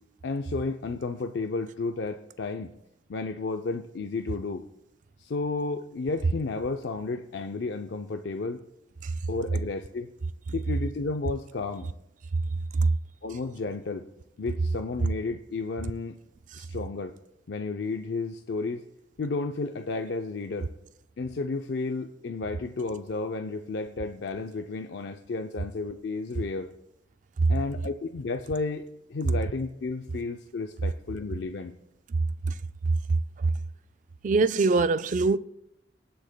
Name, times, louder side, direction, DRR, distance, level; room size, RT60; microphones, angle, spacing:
voice 1, 0.2-2.7 3.1-4.6 5.2-8.6 9.3-10.1 10.5-11.9 13.2-14.1 14.4-16.2 16.6-17.1 17.5-18.8 19.2-20.7 21.2-26.7 27.5-28.8 29.1-31.7, left 3 dB, 70° left, 0.5 m, -32 dB
voice 2, 34.2-35.4, right 3 dB, 45° right, 0.3 m, -22 dB
21.5 x 7.8 x 2.2 m
head